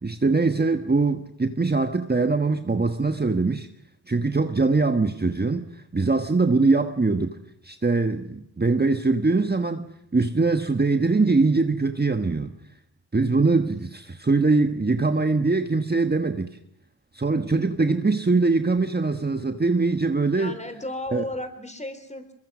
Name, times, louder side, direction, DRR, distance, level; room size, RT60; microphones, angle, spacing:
voice 1, 0.0-3.7 4.1-7.4 7.6-12.6 13.1-16.6 17.1-20.5 21.1-21.2, right 3 dB, 25° right, 7 dB, 1.4 m, -22 dB
voice 2, 20.3-22.3, left 1 dB, 15° left, 10 dB, 3.8 m, -34 dB
23.0 x 22.5 x 6.2 m, 0.78 s
cardioid pair, 65°, 42 cm